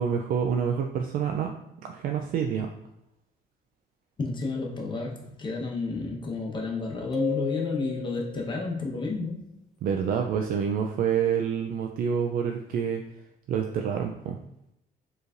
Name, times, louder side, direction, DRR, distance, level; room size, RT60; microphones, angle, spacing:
voice 1, 0.0-1.5 1.8-2.7 9.8-13.0 13.5-14.4, right 7 dB, 60° right, 3 dB, 0.4 m, -27 dB
voice 2, 4.2-9.4, left 3 dB, 30° left, -1 dB, 1.0 m, -31 dB
sound 1, 7.1-8.6, left 8 dB, ahead, 0.8 m, -34 dB
4.6 x 3.2 x 2.5 m, 0.83 s
cardioid pair, 110°, 17 cm